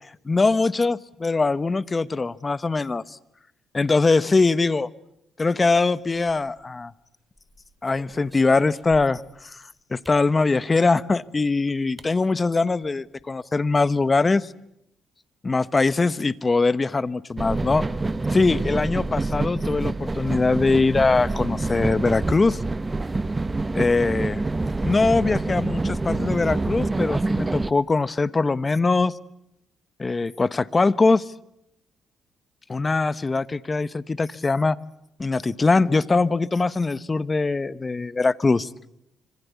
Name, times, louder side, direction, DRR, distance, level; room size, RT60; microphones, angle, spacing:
voice 1, 0.2-3.2 3.7-4.9 5.4-6.9 7.8-9.6 9.9-14.5 15.4-17.8 18.3-22.6 23.7-24.4 24.8-29.1 30.0-31.2 32.7-34.8 35.2-38.7, left 3 dB, 25° left, 17 dB, 1.1 m, -22 dB
sound 1, 6.5-6.8 7.4-9.4 10.0-10.3 11.4-11.5 12.0-12.1 12.5-12.6 12.8-13.2, equal, ahead, 5.4 m, -48 dB
sound 2, 17.4-27.7, right 3 dB, 20° right, 1.1 m, -26 dB
26.0 x 26.0 x 8.3 m, 0.80 s
cardioid pair, 90°, 0 cm